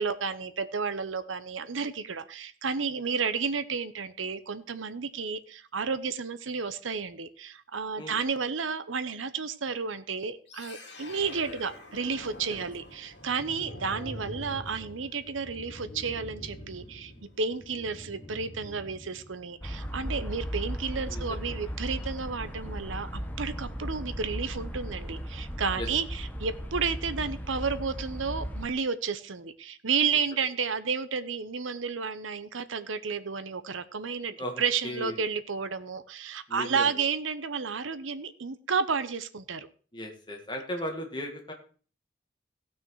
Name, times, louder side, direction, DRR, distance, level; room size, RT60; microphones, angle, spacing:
voice 1, 0.0-17.1 17.4-39.7, right 5 dB, 90° right, 13 dB, 0.9 m, -32 dB
sound 1, 10.5-21.6, left 1 dB, 60° left, 2.5 m, -45 dB
sound 2, 19.6-28.7, equal, 10° left, 1.1 m, -36 dB
voice 2, 21.1-21.6 25.7-25.9 34.4-35.2 36.5-37.0 39.9-41.5, equal, 25° left, 1 dB, 1.9 m, -37 dB
16.5 x 6.1 x 4.7 m, 0.40 s
head